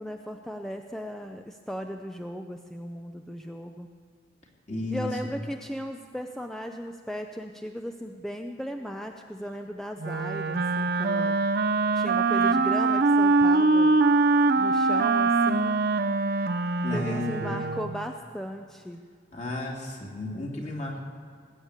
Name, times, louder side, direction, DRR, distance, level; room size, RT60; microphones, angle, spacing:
voice 1, 0.0-3.9 4.9-11.4 11.9-14.0 14.6-15.8 16.9-19.0, equal, 5° left, 4 dB, 0.5 m, -37 dB
voice 2, 4.7-5.1 16.8-17.7 19.3-21.0, left 1 dB, 40° left, -2 dB, 2.9 m, -33 dB
Wind instrument woodwind instrument, 10.0-18.1, right 3 dB, 60° right, 0.7 m, -23 dB
19.5 x 9.0 x 8.2 m, 2.1 s
head